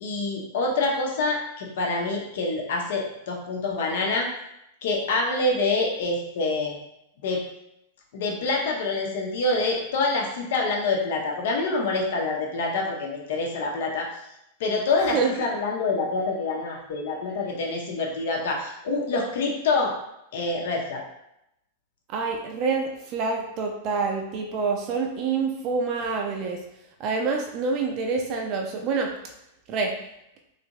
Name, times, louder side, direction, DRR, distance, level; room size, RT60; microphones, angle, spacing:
voice 1, 0.0-4.3 4.8-6.8 7.2-7.4 8.1-14.1 14.6-19.9 20.3-21.0, left 3 dB, 65° left, 0 dB, 0.7 m, -26 dB
voice 2, 22.1-26.6 27.0-29.1 29.7-29.9, right 4 dB, 45° right, 2 dB, 0.5 m, -27 dB
3.2 x 2.6 x 2.9 m, 0.83 s
hypercardioid pair, 100°, 0 cm